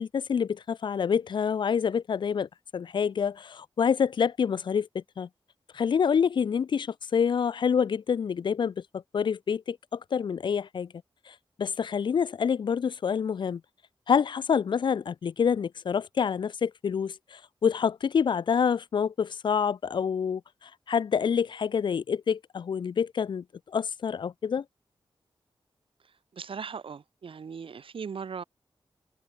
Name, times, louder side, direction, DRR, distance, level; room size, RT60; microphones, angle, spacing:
voice 1, 0.0-5.3 5.7-8.8 9.1-10.9 11.3-13.6 14.1-24.6, left 7 dB, 55° left, 0.4 m, -27 dB
voice 2, 26.0-28.4, right 6 dB, 75° right, 1.7 m, -39 dB
wide cardioid pair, 85°, 9 cm